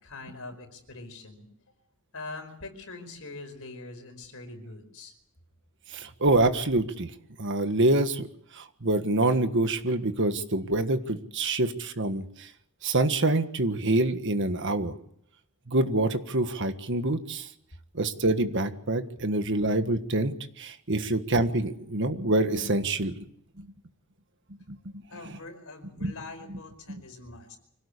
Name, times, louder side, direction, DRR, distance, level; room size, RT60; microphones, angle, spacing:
voice 1, 0.0-1.5 2.1-5.1 25.1-27.6, left 3 dB, 65° left, 5 dB, 5.0 m, -43 dB
voice 2, 5.9-7.1 7.4-8.3 8.5-12.2 12.8-14.9 15.7-17.5 18.0-23.1 26.0-26.1 26.9-27.0, right 2 dB, 55° right, 9 dB, 1.6 m, -26 dB
25.0 x 17.5 x 8.5 m, 0.71 s
head